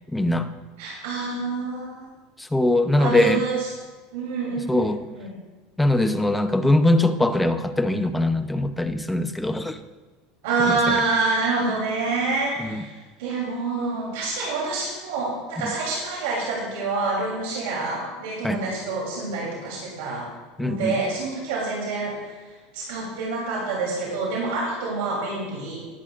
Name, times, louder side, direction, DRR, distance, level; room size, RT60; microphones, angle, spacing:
voice 1, 0.1-0.5 2.4-3.4 4.7-5.0 5.8-9.8 10.7-11.0 12.6-12.8 15.6-15.7 18.4-18.6 20.6-21.0, left 1 dB, 5° left, 9 dB, 0.8 m, -22 dB
voice 2, 0.8-2.1 3.0-3.7 4.1-5.3 10.4-20.3 20.6-22.1 22.7-25.8, right 3 dB, 75° right, -4 dB, 3.4 m, -27 dB
20.0 x 8.3 x 2.5 m, 1.3 s
supercardioid pair, 110°, 0 cm